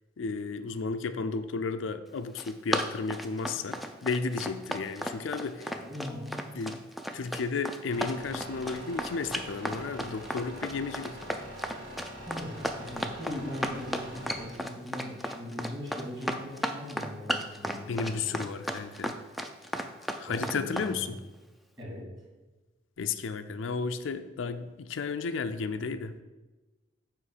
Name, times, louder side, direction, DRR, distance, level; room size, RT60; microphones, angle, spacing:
voice 1, 0.2-5.7 6.5-6.8 7.1-11.2 17.9-19.1 20.2-21.2 23.0-26.1, left 4 dB, 85° left, 10 dB, 0.4 m, -33 dB
Run, 2.2-20.9, equal, ahead, 0.4 m, -34 dB
voice 2, 5.4-6.4 12.2-18.4 20.2-21.1 21.8-22.0, left 1 dB, 20° right, -5 dB, 2.7 m, -40 dB
sound 1, 7.9-14.5, equal, 85° right, 1.8 m, -44 dB
8.9 x 3.1 x 6.6 m, 1.2 s
head